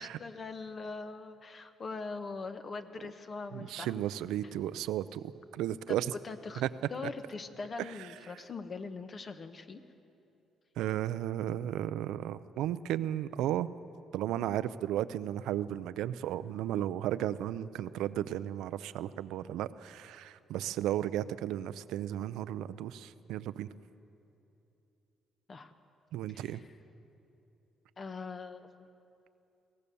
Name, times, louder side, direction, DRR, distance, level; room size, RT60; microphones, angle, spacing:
voice 1, 0.0-3.9 5.9-6.6 6.9-9.8 25.5-25.7 26.3-26.6 28.0-28.9, left 4 dB, 40° left, 9 dB, 1.3 m, -42 dB
voice 2, 3.5-6.1 6.6-6.7 10.8-13.7 14.1-23.7 26.1-26.6, right 12 dB, 85° right, 14 dB, 0.5 m, -34 dB
22.0 x 17.5 x 7.0 m, 2.8 s
cardioid pair, 85°, 0 cm